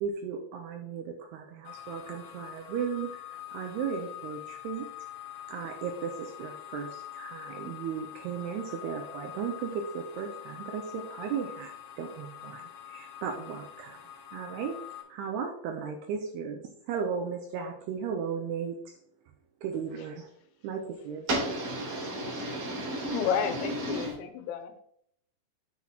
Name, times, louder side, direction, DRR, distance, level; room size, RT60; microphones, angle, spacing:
voice 1, 0.0-4.9 5.5-11.7 12.0-14.0 14.3-14.8 15.1-19.0 19.6-20.3 20.6-21.3, right 6 dB, 80° right, 3 dB, 2.4 m, -35 dB
sound 1, 1.6-15.0, left 11 dB, 70° left, 3.0 m, -45 dB
voice 2, 21.3-24.1, right 1 dB, 40° right, -5 dB, 4.6 m, -33 dB
voice 3, 23.1-24.8, left 8 dB, 90° left, 7 dB, 3.1 m, -31 dB
10.5 x 6.1 x 3.0 m, 0.69 s
omnidirectional pair, 5.4 m